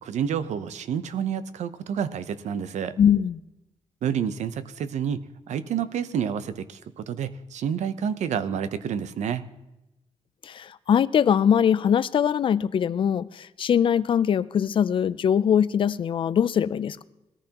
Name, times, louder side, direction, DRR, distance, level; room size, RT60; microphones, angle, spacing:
voice 1, 0.0-3.0 4.0-5.2 5.5-9.4, right 8 dB, 85° right, 13 dB, 0.7 m, -29 dB
voice 2, 3.0-3.4 10.4-17.0, left 8 dB, 45° left, 16 dB, 0.4 m, -22 dB
21.0 x 14.0 x 2.9 m, 0.96 s
wide cardioid pair, 150°, 12 cm